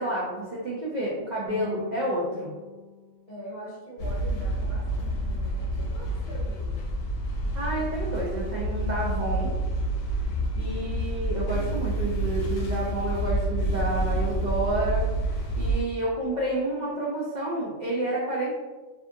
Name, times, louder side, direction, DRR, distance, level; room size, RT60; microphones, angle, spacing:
voice 1, 0.0-2.5 7.5-9.5 10.6-18.5, right 1 dB, 60° right, -5 dB, 0.5 m, -30 dB
sound 1, 1.5-4.6, left 1 dB, 85° right, 1.1 m, -44 dB
voice 2, 3.2-6.8, right 1 dB, 35° left, -7 dB, 0.7 m, -43 dB
sound 2, 4.0-15.8, right 1 dB, 90° left, 1.0 m, -28 dB
2.6 x 2.4 x 2.5 m, 1.3 s
omnidirectional pair, 1.3 m